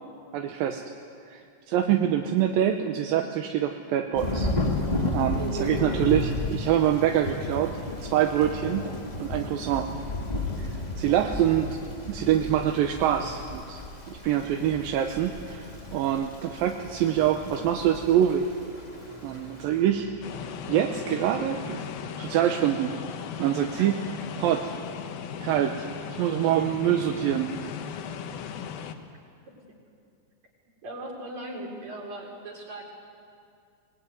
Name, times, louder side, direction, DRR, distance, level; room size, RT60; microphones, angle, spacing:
voice 1, 0.3-0.8 1.3-4.5 5.1-7.7 8.0-8.9 9.2-9.9 10.6-10.7 11.0-11.8 12.1-13.8 14.1-15.6 15.9-18.5 19.2-20.1 20.7-21.8 22.2-22.9 23.4-24.0 24.4-24.7 25.4-27.6, right 10 dB, 75° right, 4 dB, 2.4 m, -25 dB
Thunder / Rain, 4.1-19.7, left 2 dB, 35° left, 0.6 m, -33 dB
voice 2, 5.4-5.8 11.3-11.4 19.3-19.4 23.8-23.9 29.5-29.6 30.8-32.8, right 3 dB, 45° right, -2 dB, 5.3 m, -38 dB
sound 1, 16.3-22.0, left 2 dB, ahead, 2.0 m, -49 dB
sound 2, 20.2-29.0, left 8 dB, 70° left, 2.8 m, -37 dB
24.0 x 20.0 x 9.5 m, 2.4 s
omnidirectional pair, 4.7 m